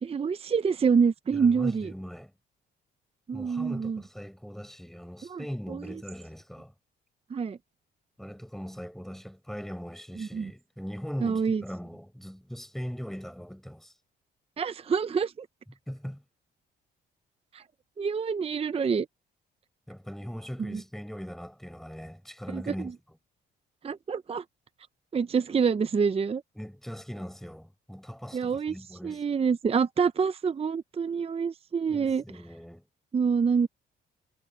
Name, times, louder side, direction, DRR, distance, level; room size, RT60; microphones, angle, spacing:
voice 1, 0.0-1.9 3.3-4.0 5.2-5.4 5.7-5.8 7.3-7.6 10.2-10.5 11.2-11.6 14.6-15.5 17.5-17.6 18.0-19.1 20.6-20.8 22.5-22.9 23.8-24.4 25.1-26.4 28.3-28.7 29.0-32.2 33.1-33.7, right 6 dB, 30° right, 0.6 m, -26 dB
voice 2, 1.3-2.3 3.3-6.7 8.2-13.9 15.9-16.2 19.9-23.2 26.5-29.2 31.9-32.9, equal, ahead, 6.4 m, -40 dB
cardioid pair, 90°, 20 cm